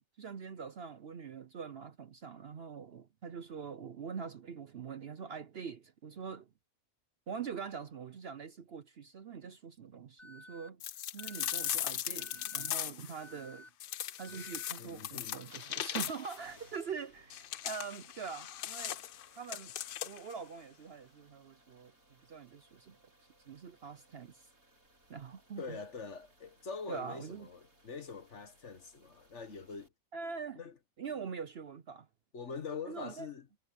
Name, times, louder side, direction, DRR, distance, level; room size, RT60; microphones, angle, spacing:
voice 1, 0.2-6.5 7.3-10.8 11.1-13.7 14.2-19.0 19.4-19.7 20.0-21.9 22.3-23.0 23.5-24.5 25.1-25.8 26.9-27.5 30.1-30.6 31.0-32.1 32.9-33.3, right 6 dB, 55° right, 0.8 m, -44 dB
Alarm, 10.2-10.7 11.2-11.7 12.2-12.7 13.2-13.7 14.2-14.7, left 2 dB, ahead, 0.8 m, -53 dB
sound 1, 10.8-13.2 13.8-16.4 17.3-20.3, left 11 dB, 75° left, 0.5 m, -39 dB
voice 2, 14.8-15.4 25.6-29.9 30.6-30.8 32.3-33.4, left 5 dB, 55° left, 1.9 m, -44 dB
sound 2, 15.5-29.9, right 1 dB, 75° right, 7.7 m, -65 dB
omnidirectional pair, 1.5 m